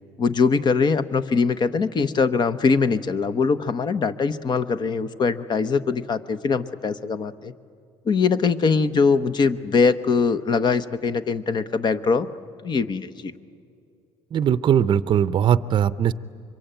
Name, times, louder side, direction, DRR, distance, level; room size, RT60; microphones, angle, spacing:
voice 1, 0.2-7.5 8.0-12.3 12.6-13.3, left 5 dB, 40° left, 13 dB, 1.0 m, -22 dB
voice 2, 14.3-16.1, right 9 dB, 45° right, 15 dB, 0.6 m, -20 dB
24.5 x 23.0 x 9.1 m, 2.5 s
cardioid pair, 95°, 11 cm